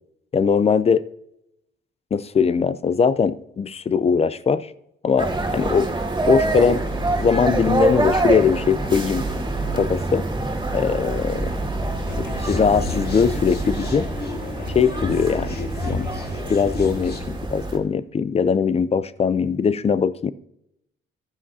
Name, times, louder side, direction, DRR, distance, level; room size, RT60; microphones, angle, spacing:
voice 1, 0.3-1.0 2.1-4.7 5.0-5.9 6.3-6.8 7.2-9.3 9.7-10.3 10.7-11.5 12.2-14.1 14.7-15.6 15.8-16.1 16.5-20.3, left 6 dB, 30° left, 16 dB, 0.5 m, -21 dB
sound 1, 5.2-17.8, right 2 dB, 20° right, 2.2 m, -25 dB
sound 2, 12.1-17.2, left 4 dB, 55° left, 1.9 m, -32 dB
12.0 x 9.8 x 2.7 m, 0.81 s
cardioid pair, 90°, 20 cm